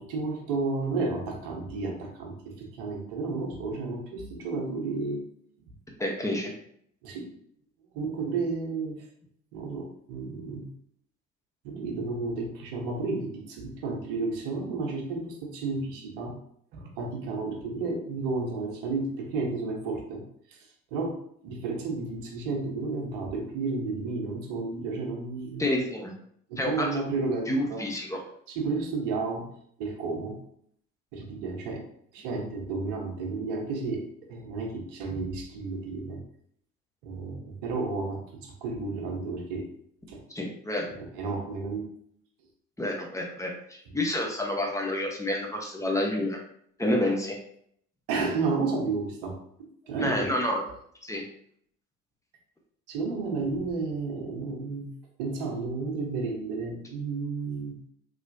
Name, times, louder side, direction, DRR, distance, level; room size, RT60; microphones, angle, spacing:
voice 1, 0.0-5.2 7.0-7.3 7.9-9.0 9.5-10.7 11.6-16.3 16.7-20.2 20.5-20.6 20.9-25.7 26.5-27.9 28.5-30.4 31.1-31.9 32.1-36.2 37.0-39.7 40.1-40.2 41.1-41.9 48.1-50.3 52.9-54.9 55.2-57.8, right 3 dB, 70° right, 1 dB, 1.0 m, -32 dB
voice 2, 6.0-6.5 25.6-26.1 26.6-26.9 27.5-28.2 40.3-40.9 42.8-46.4 46.8-47.4 50.0-50.6 51.0-51.2, left 1 dB, 10° left, 0 dB, 1.0 m, -29 dB
3.2 x 2.9 x 2.6 m, 0.66 s
hypercardioid pair, 55°, 38 cm